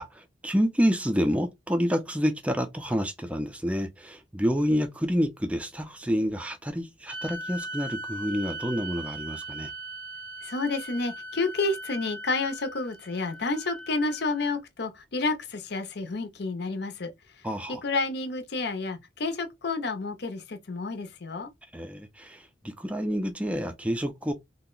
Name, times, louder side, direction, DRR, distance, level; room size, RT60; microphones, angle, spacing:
voice 1, 0.0-9.7 17.4-17.8 21.7-24.3, equal, 5° right, 0.4 m, -28 dB
sound 1, 7.1-14.6, right 1 dB, 70° right, 0.7 m, -39 dB
voice 2, 10.4-17.1 17.8-21.5, left 3 dB, 55° left, 0.6 m, -30 dB
2.8 x 2.1 x 3.8 m
head